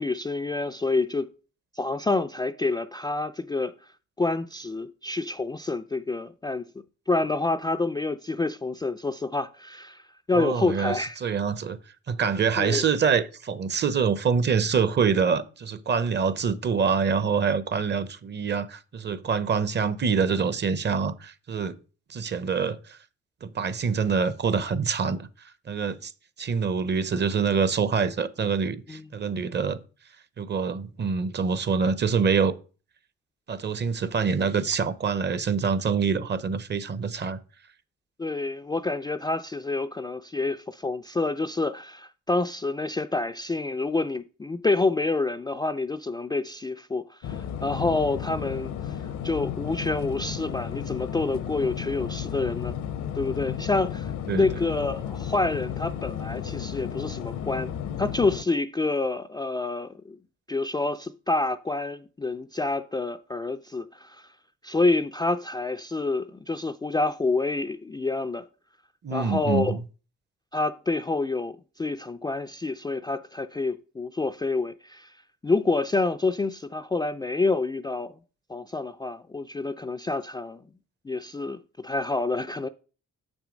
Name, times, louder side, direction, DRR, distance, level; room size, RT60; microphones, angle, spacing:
voice 1, 0.0-1.3 1.8-3.7 4.2-6.6 7.1-11.2 12.6-12.8 28.9-29.0 38.2-48.9 49.2-52.7 53.2-57.7 58.0-60.2 60.5-64.2 64.6-68.5 69.1-69.8 70.5-75.1 75.4-78.1 78.5-80.6 81.0-82.7, left 3 dB, 15° left, 0.3 m, -28 dB
voice 2, 10.3-11.8 12.1-21.8 22.1-23.0 23.4-25.3 25.7-26.1 26.4-29.8 30.4-32.6 33.5-37.4 54.3-54.5 69.0-69.8, right 6 dB, 35° right, 0.6 m, -25 dB
sound 1, 47.2-58.4, left 9 dB, 75° left, 0.8 m, -33 dB
6.7 x 6.2 x 5.1 m
cardioid pair, 90°, 30 cm